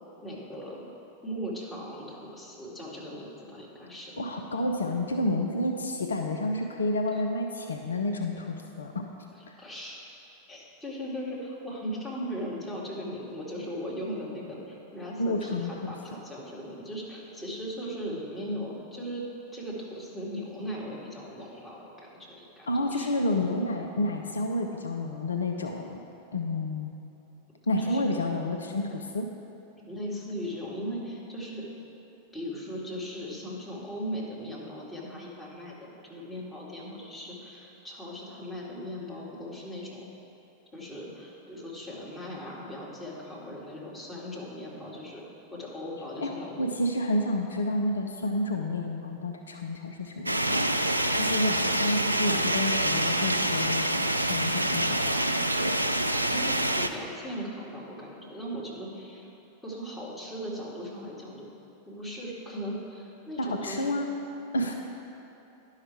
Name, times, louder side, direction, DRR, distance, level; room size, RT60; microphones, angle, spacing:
voice 1, 0.2-0.8 1.2-4.1 7.1-7.2 9.3-10.0 10.5-19.2 19.5-23.1 27.8-28.0 29.8-31.7 32.3-40.0 40.7-45.2 45.5-46.7 56.1-59.3 59.6-61.5 61.9-63.9, equal, 10° left, -6 dB, 2.0 m, -38 dB
voice 2, 4.2-9.1 15.2-15.9 22.7-26.0 26.3-27.0 27.7-29.3 46.2-50.6 51.2-55.3 63.4-64.2 64.5-64.7, left 1 dB, 70° left, 3 dB, 0.5 m, -30 dB
sound 1, 50.3-56.9, right 1 dB, 85° right, 0.3 m, -26 dB
11.0 x 5.7 x 4.6 m, 2.8 s
figure-of-eight pair, 90°, 0 cm